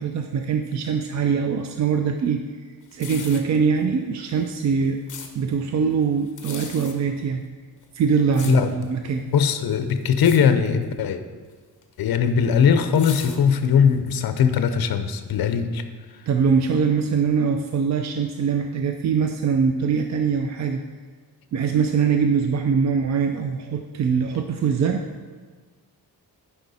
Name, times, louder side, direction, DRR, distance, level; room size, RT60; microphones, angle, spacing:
voice 1, 0.0-2.4 2.9-5.0 5.3-7.4 7.9-9.3 16.3-20.8 21.5-25.0, right 6 dB, 45° right, 5 dB, 0.4 m, -22 dB
sound 1, 2.9-3.6 4.4-5.3 6.3-7.0 7.8-8.9 9.4-9.8 10.1-10.4 10.7-10.9 11.8-13.9 14.4-14.5, left 6 dB, 50° left, 1.0 m, -38 dB
voice 2, 8.4-8.9 9.3-11.2 12.0-15.8, left 7 dB, 65° left, 9 dB, 0.7 m, -20 dB
10.0 x 5.5 x 4.1 m, 1.5 s
wide cardioid pair, 155°, 38 cm